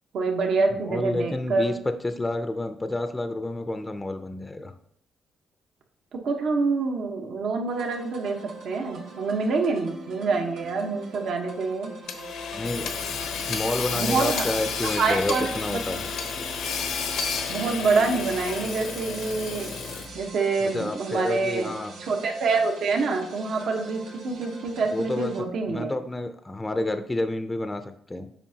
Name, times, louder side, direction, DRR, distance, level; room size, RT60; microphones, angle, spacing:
voice 1, 0.1-1.7 6.1-8.4 8.6-11.9 13.9-14.4 14.8-16.0 17.5-19.7 20.1-21.7 22.0-25.9, right 4 dB, 70° right, 2 dB, 1.0 m, -26 dB
voice 2, 0.8-1.7 2.0-4.7 12.5-12.9 13.5-16.0 20.6-21.9 24.9-28.3, left 2 dB, 15° left, 8 dB, 0.5 m, -29 dB
sound 1, 7.7-25.4, right 3 dB, 85° right, 1.5 m, -44 dB
Hammer / Sawing, 12.1-20.3, left 6 dB, 80° left, 0.8 m, -31 dB
7.3 x 5.1 x 2.8 m, 0.66 s
cardioid pair, 95°, 0 cm